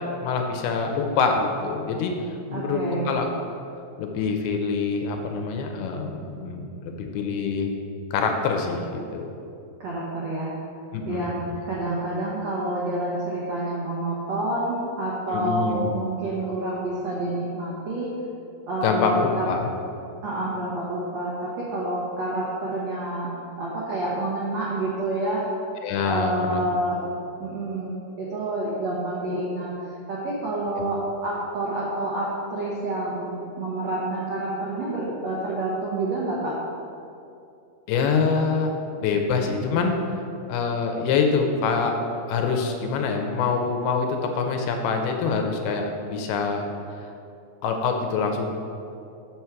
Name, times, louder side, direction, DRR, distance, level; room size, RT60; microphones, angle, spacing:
voice 1, 0.0-2.1 2.5-3.3 4.0-7.7 8.1-9.3 10.9-11.4 15.3-15.9 18.8-19.7 25.8-26.7 30.7-30.8 37.9-38.7 39.0-40.0 40.5-41.9 42.3-46.6 47.0-47.1 47.6-48.6, left 5 dB, 80° left, 3 dB, 2.5 m, -25 dB
voice 2, 2.5-3.1 9.8-10.5 11.1-11.4 11.6-18.1 18.7-19.5 20.2-23.3 23.6-25.5 26.0-27.0 27.4-29.7 30.1-36.5, right 2 dB, 80° right, -7 dB, 1.5 m, -28 dB
7.1 x 6.2 x 4.5 m, 2.7 s
omnidirectional pair, 4.7 m